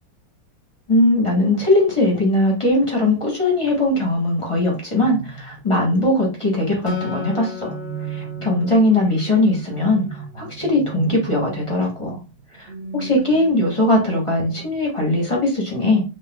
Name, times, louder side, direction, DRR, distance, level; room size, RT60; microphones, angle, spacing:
voice 1, 0.9-7.7 8.1-12.2 12.5-16.0, left 1 dB, 20° left, -2 dB, 1.0 m, -20 dB
sound 1, 5.0-6.1 7.7-14.2, right 8 dB, 55° right, 0.9 m, -36 dB
Acoustic guitar, 6.9-10.3, left 6 dB, 85° left, 1.6 m, -34 dB
5.6 x 2.6 x 2.3 m, 0.31 s
omnidirectional pair, 2.0 m